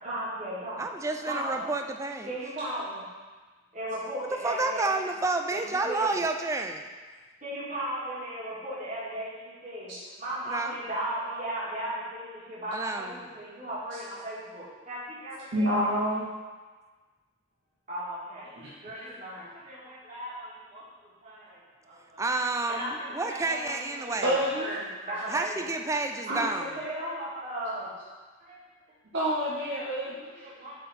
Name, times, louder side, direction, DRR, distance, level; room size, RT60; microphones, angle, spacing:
voice 1, 0.0-0.9 1.3-1.7 2.3-3.0 3.7-4.9 5.5-5.6 5.9-6.2 7.4-9.9 10.2-15.7 17.9-18.5 18.8-20.8 21.2-21.6 21.8-22.2 22.7-24.3 24.6-24.8 25.1-25.7 26.3-27.9 28.5-28.6 29.8-29.9 30.6-30.7, right 1 dB, 40° right, -9 dB, 2.0 m, -36 dB
voice 2, 0.8-2.3 4.4-6.8 10.5-10.8 12.7-13.3 22.2-24.3 25.3-26.7, right 3 dB, 15° right, 5 dB, 0.3 m, -30 dB
voice 3, 15.5-16.3 18.5-19.2 24.2-24.7 26.3-26.5 29.1-30.5, equal, 60° right, -6 dB, 0.9 m, -29 dB
7.5 x 4.0 x 4.2 m, 1.4 s
head